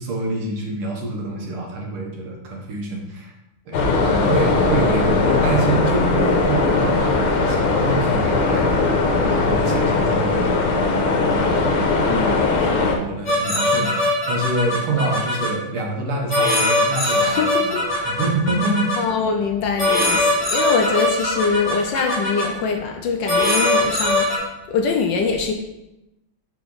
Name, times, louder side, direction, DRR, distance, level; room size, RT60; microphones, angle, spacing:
voice 1, 0.0-3.3 3.7-10.7 11.3-11.9 12.5-18.9, right 2 dB, 85° right, 0 dB, 2.1 m, -26 dB
sound 1, 3.7-12.9, left 3 dB, 90° left, 1.8 m, -19 dB
voice 2, 12.1-12.5 17.0-17.8 19.0-24.3 24.7-25.5, left 5 dB, 70° left, 4 dB, 1.2 m, -23 dB
sound 2, 13.3-15.5 16.3-19.0 19.8-22.5 23.3-24.4, left 1 dB, 35° left, 2.0 m, -21 dB
5.8 x 5.0 x 3.9 m, 0.92 s
omnidirectional pair, 2.3 m